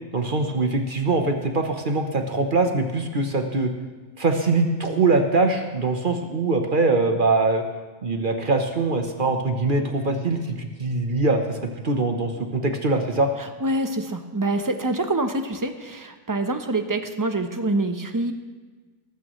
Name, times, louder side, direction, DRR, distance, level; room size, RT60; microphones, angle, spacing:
voice 1, 0.1-3.7 4.2-7.6 8.0-13.3, right 3 dB, 45° right, 5 dB, 1.2 m, -23 dB
voice 2, 13.4-18.3, right 2 dB, 20° right, 7 dB, 0.8 m, -26 dB
18.5 x 15.5 x 3.2 m, 1.4 s
omnidirectional pair, 1.2 m